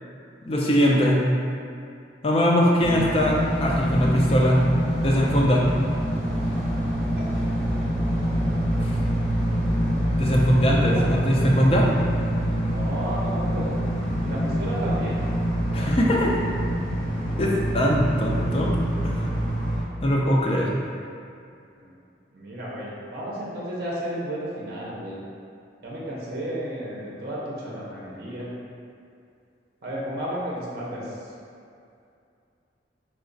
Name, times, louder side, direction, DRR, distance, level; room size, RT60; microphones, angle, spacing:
voice 1, 0.4-1.2 2.2-3.4 3.6-4.6 5.0-5.7 8.8-8.9 10.2-11.9 15.7-16.3 17.4-18.7 19.0-19.3 20.0-20.7, equal, 30° left, -3 dB, 0.4 m, -21 dB
sound 1, 2.8-19.8, equal, 15° left, 0.9 m, -25 dB
voice 2, 12.6-13.7 14.2-15.2 21.8-21.9 22.3-25.2 25.8-28.5 29.8-31.0, right 1 dB, 55° right, -5 dB, 0.6 m, -33 dB
3.0 x 2.4 x 3.9 m, 2.5 s
head